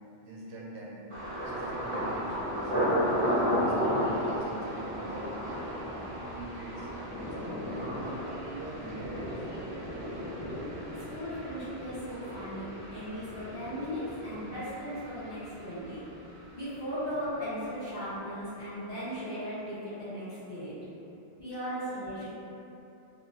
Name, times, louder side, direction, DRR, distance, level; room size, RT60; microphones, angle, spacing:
voice 1, 0.2-1.0 1.4-2.7 3.3-7.9 8.4-9.5, right 1 dB, 80° right, -4 dB, 0.9 m, -43 dB
Thunder, 1.1-16.9 17.1-17.8 18.2-18.4, equal, 35° right, 0.6 m, -34 dB
voice 2, 11.1-16.0 16.5-20.8 21.4-22.3, equal, 45° left, -18 dB, 1.1 m, -37 dB
2.8 x 2.4 x 2.7 m, 3.0 s
omnidirectional pair, 1.1 m